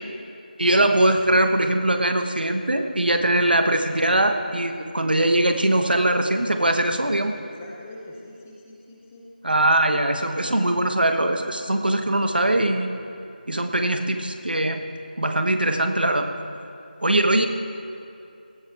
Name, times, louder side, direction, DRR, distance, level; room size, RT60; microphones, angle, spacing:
voice 1, 0.6-7.3 9.4-12.9 13.5-14.8 15.2-16.3 17.0-17.5, right 1 dB, 75° right, 6 dB, 1.3 m, -21 dB
voice 2, 7.3-9.3 9.8-9.9, left 2 dB, 10° left, -3 dB, 0.8 m, -44 dB
18.0 x 13.5 x 3.4 m, 2.6 s
figure-of-eight pair, 170°, 5 cm